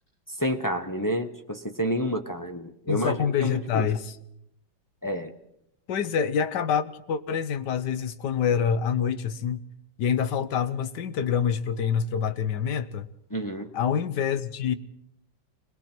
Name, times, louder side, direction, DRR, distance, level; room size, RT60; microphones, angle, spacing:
voice 1, 0.4-3.9 5.0-5.3 13.3-13.7, equal, 20° left, 4 dB, 0.5 m, -29 dB
voice 2, 2.9-4.2 5.9-9.6 10.0-13.1 13.7-14.7, left 7 dB, 65° left, 12 dB, 1.5 m, -26 dB
29.0 x 21.5 x 4.5 m, 0.80 s
omnidirectional pair, 2.1 m